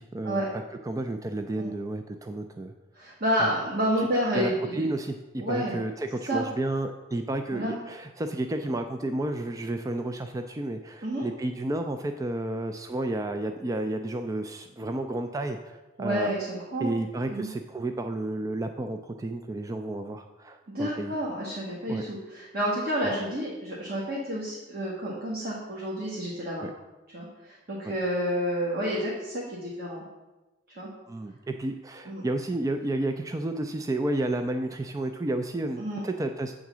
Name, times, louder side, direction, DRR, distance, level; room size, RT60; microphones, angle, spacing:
voice 1, 0.0-2.7 3.4-3.5 4.3-16.3 16.8-21.1 21.9-22.1 26.6-26.7 27.8-27.9 31.1-36.5, right 2 dB, 20° right, 6 dB, 0.3 m, -31 dB
voice 2, 3.0-4.9 5.4-5.8 6.3-6.5 7.5-7.8 11.0-11.2 16.0-16.9 17.3-17.5 20.7-26.7 27.1-30.0 30.7-30.9 32.1-32.2 35.8-36.0, equal, 55° right, -5 dB, 1.5 m, -29 dB
8.1 x 3.8 x 6.0 m, 1.1 s
head